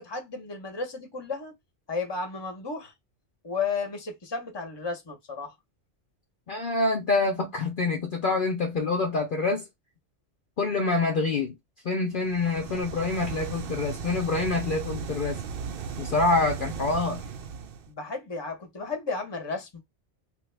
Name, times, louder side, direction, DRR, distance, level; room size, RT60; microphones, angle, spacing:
voice 1, 0.0-1.5 1.9-2.9 3.4-5.5 17.9-19.8, left 4 dB, 25° left, 0.8 m, -33 dB
voice 2, 6.5-9.7 10.6-11.5 11.8-15.4 16.0-17.3, left 3 dB, 55° left, 0.8 m, -26 dB
sound 1, 12.2-17.9, right 6 dB, 60° right, 0.7 m, -36 dB
3.2 x 2.3 x 3.2 m
omnidirectional pair, 1.2 m